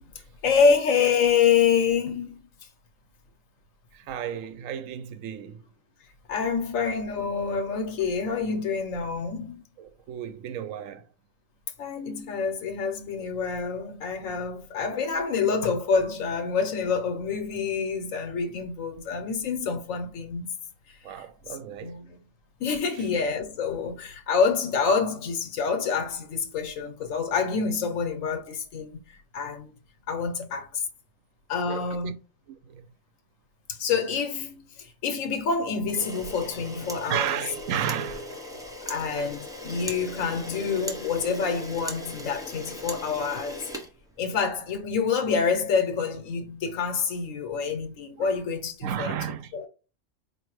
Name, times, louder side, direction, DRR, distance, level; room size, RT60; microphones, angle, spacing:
voice 1, 0.4-2.4 6.3-9.6 11.8-20.5 21.8-22.2 22.6-29.0 29.3-29.7 30.1-30.8 31.5-32.1 33.7-37.4 38.9-43.7 44.2-49.2 49.5-49.7, left 5 dB, 85° left, 1.2 m, -27 dB
voice 2, 3.9-5.7 9.8-11.0 21.0-22.0 31.6-32.1 32.7-32.9 37.1-38.8 39.2-39.3 48.2-48.3 48.8-49.7, right 9 dB, 85° right, 1.0 m, -33 dB
Camera, 35.8-44.6, left 1 dB, 5° right, 0.6 m, -38 dB
4.5 x 2.7 x 3.1 m
omnidirectional pair, 1.3 m